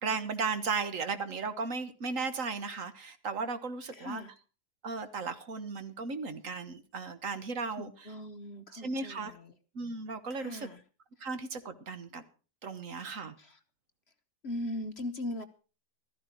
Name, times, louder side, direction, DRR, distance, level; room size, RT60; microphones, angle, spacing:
voice 1, 0.0-4.2 4.8-7.9 8.7-9.3 9.7-10.7 11.2-12.2 12.6-13.3, right 4 dB, 55° right, 11 dB, 1.5 m, -35 dB
voice 2, 3.9-4.3 7.8-9.5 10.3-10.8 13.4-13.6 14.4-15.4, left 1 dB, 45° left, 8 dB, 1.1 m, -39 dB
15.0 x 14.0 x 4.5 m, 0.36 s
omnidirectional pair, 1.7 m